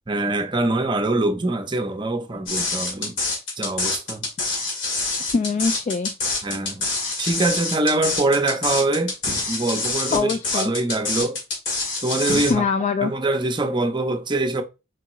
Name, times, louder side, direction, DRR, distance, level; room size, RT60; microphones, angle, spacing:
voice 1, 0.1-3.2 3.6-4.3 6.4-6.9 7.2-9.1 9.5-11.4 12.0-12.6 13.0-14.6, right 2 dB, 25° right, 0.7 m, -24 dB
sound 1, 2.5-12.5, left 3 dB, 75° left, 2.2 m, -26 dB
voice 2, 5.3-6.1 10.1-10.7 12.5-13.1, left 5 dB, 40° left, 0.3 m, -23 dB
sound 2, 9.1-9.6 12.2-12.7 13.2-13.3, left 1 dB, 20° left, 0.9 m, -33 dB
4.6 x 3.6 x 3.0 m
head